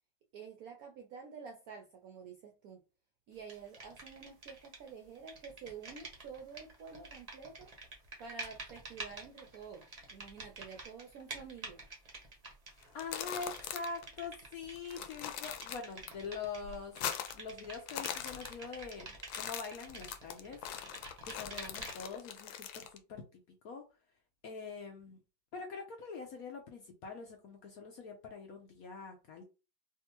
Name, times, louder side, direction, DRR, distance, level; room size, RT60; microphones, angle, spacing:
voice 1, 0.3-2.8 3.3-7.7 8.2-11.8, right 6 dB, 70° right, 0.8 m, -49 dB
sound 1, 3.5-4.9 5.1-22.2, right 2 dB, 35° right, 0.5 m, -49 dB
sound 2, 12.8-14.1 14.3-14.4 14.8-16.1 16.4-17.5 17.8-18.9 19.2-23.0, left 10 dB, 85° left, 1.3 m, -41 dB
voice 2, 12.9-19.1 19.3-20.6 20.9-23.8 24.4-25.2 25.5-29.4, left 4 dB, 65° left, 0.9 m, -44 dB
3.5 x 2.6 x 2.9 m
omnidirectional pair, 2.1 m